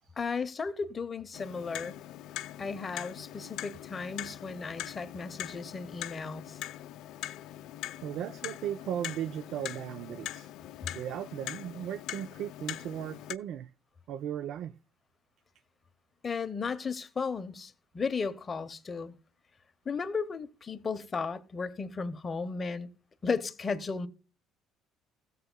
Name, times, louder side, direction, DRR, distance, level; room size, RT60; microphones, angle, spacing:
voice 1, 0.2-2.0 2.6-6.6 16.2-19.1 19.8-22.9 23.2-24.1, left 5 dB, 25° left, 0.9 m, -35 dB
Clock, 1.3-13.3, left 13 dB, 65° left, 0.5 m, -42 dB
voice 2, 8.0-10.5 10.9-13.7 14.1-14.8, right 10 dB, 60° right, 0.5 m, -37 dB
16.5 x 7.9 x 2.2 m
cardioid pair, 145°, 0 cm